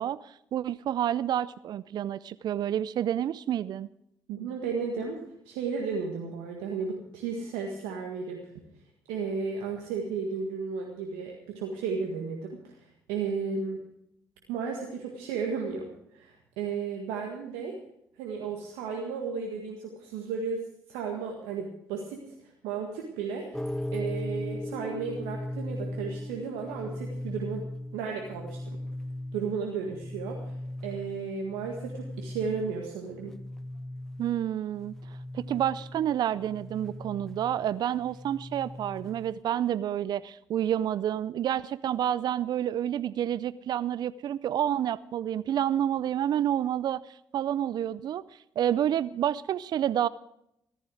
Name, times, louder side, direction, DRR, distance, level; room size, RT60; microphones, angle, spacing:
voice 1, 0.0-3.9 34.2-47.0 47.3-48.2 48.6-50.1, right 10 dB, 65° right, 18 dB, 0.5 m, -29 dB
voice 2, 4.3-8.5 9.1-13.8 14.5-17.8 18.2-20.6 20.9-23.6 23.9-27.7 27.9-28.8 29.3-30.6 30.8-33.4, right 5 dB, 85° right, 1 dB, 1.7 m, -34 dB
sound 1, 23.5-39.4, left 1 dB, 5° left, 0.7 m, -38 dB
15.0 x 14.0 x 4.9 m, 0.77 s
hypercardioid pair, 50°, 8 cm